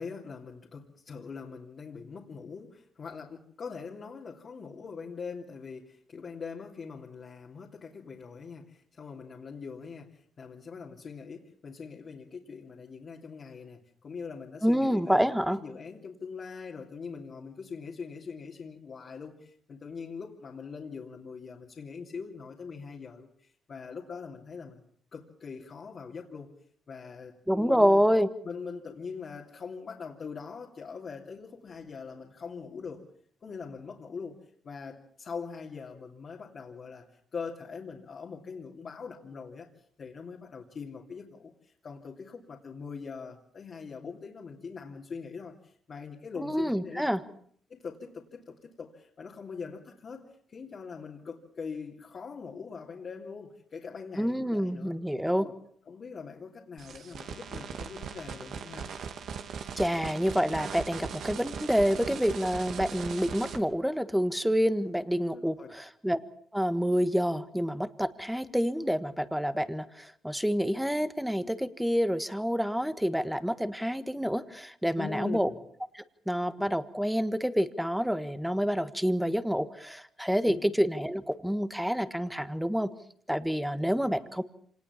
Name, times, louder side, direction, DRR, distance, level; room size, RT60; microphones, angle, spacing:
voice 1, 0.0-24.8 25.1-26.5 26.9-28.0 28.4-33.0 33.4-34.4 34.6-37.1 37.3-39.7 40.0-47.0 47.7-54.9 55.4-55.5 55.9-58.9 65.3-65.7 75.0-75.6 80.5-80.7, left 5 dB, 45° left, -1 dB, 2.9 m, -42 dB
voice 2, 14.6-15.6 27.5-28.3 46.4-47.2 54.2-55.5 59.8-66.2 66.5-75.5 76.3-82.9 83.3-84.4, equal, ahead, 12 dB, 1.5 m, -28 dB
sound 1, 56.8-63.6, right 6 dB, 65° right, 2.6 m, -39 dB
26.0 x 19.0 x 7.2 m, 0.62 s
cardioid pair, 90°, 0 cm